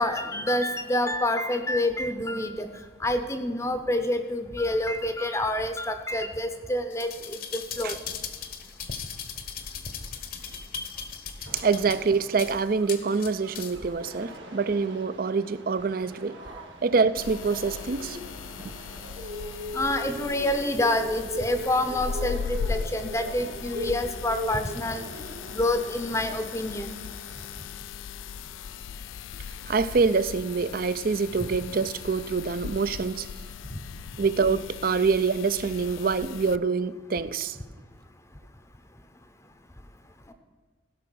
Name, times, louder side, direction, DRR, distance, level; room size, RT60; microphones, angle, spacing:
voice 1, 0.0-2.7 3.0-8.0 19.7-25.2 25.5-26.9, left 1 dB, 15° left, 8 dB, 0.7 m, -27 dB
sound 1, 6.9-13.9 14.3-14.4, left 6 dB, 45° left, 0.9 m, -38 dB
sound 2, 11.4-27.6, right 1 dB, 75° right, 1.8 m, -41 dB
voice 2, 11.5-16.4 16.8-18.2 29.6-33.3 34.2-37.6, right 4 dB, 45° right, 15 dB, 0.4 m, -25 dB
sound 3, 17.2-36.6, left 6 dB, 85° left, 0.3 m, -38 dB
16.0 x 5.8 x 6.2 m, 1.5 s
head